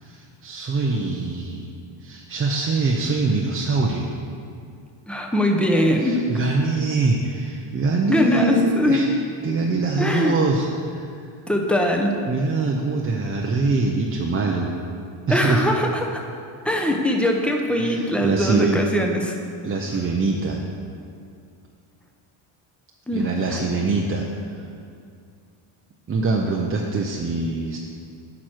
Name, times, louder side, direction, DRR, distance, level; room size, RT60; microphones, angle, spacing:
voice 1, 0.0-1.7 2.0-4.1 6.0-9.1 9.4-11.1 12.3-14.7 15.3-15.6 17.8-18.8 19.6-20.6 23.1-24.3 26.1-27.8, right 3 dB, 25° right, -1 dB, 0.7 m, -23 dB
voice 2, 5.1-6.3 8.1-9.0 10.0-10.4 11.5-12.1 15.3-16.2 16.6-19.4 23.1-23.6, left 1 dB, ahead, 1 dB, 0.9 m, -22 dB
9.3 x 6.1 x 4.5 m, 2.4 s
cardioid pair, 105°, 50 cm